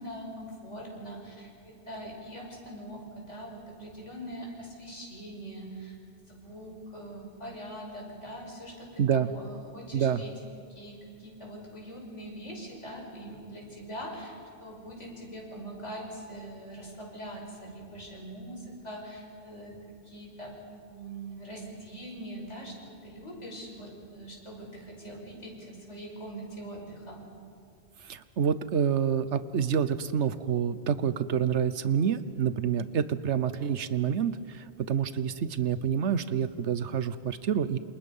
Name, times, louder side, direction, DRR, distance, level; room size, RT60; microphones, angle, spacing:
voice 1, 0.0-6.0 6.3-10.3 10.7-19.8 20.0-20.6 20.9-27.3, right 1 dB, 80° left, -1 dB, 6.0 m, -42 dB
voice 2, 9.0-9.3 9.9-10.2 28.0-37.8, right 8 dB, 75° right, 14 dB, 1.2 m, -28 dB
28.0 x 27.5 x 5.5 m, 2.4 s
omnidirectional pair, 1.2 m